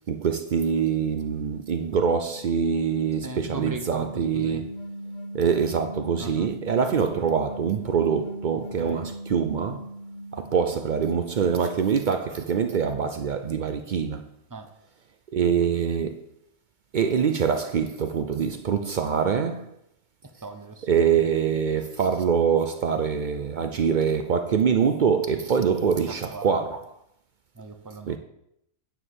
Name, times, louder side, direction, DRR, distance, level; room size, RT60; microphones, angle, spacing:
voice 1, 0.1-4.7 5.3-9.8 10.3-14.3 15.3-16.2 16.9-19.7 20.9-26.8 28.1-28.2, right 7 dB, 85° right, 0.4 m, -24 dB
sound 1, 1.7-11.8, equal, 50° left, 1.1 m, -39 dB
voice 2, 3.2-4.7 6.2-6.5 8.5-9.1 14.5-14.7 20.2-21.0 26.3-26.8 27.5-28.2, right 3 dB, 20° right, 0.6 m, -38 dB
9.8 x 4.8 x 7.3 m
omnidirectional pair, 1.6 m